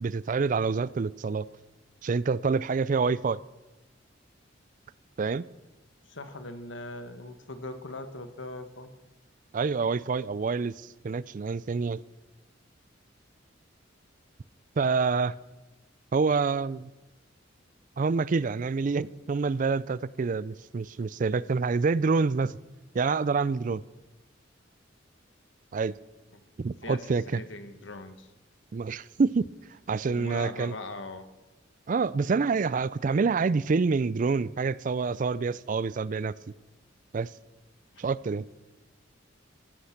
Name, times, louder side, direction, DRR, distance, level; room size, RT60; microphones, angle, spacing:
voice 1, 0.0-1.5 2.0-3.4 5.2-5.4 9.5-12.0 14.8-15.3 16.1-16.9 18.0-22.6 22.9-23.8 25.7-26.0 26.6-27.4 28.7-29.5 29.9-30.7 31.9-36.3 37.1-37.3 38.0-38.5, right 4 dB, 45° right, 20 dB, 0.4 m, -27 dB
voice 2, 6.0-8.9 26.3-26.4 26.8-28.3 30.1-31.3 37.9-38.0, left 2 dB, 75° left, 10 dB, 1.4 m, -40 dB
15.0 x 12.5 x 5.8 m, 1.1 s
head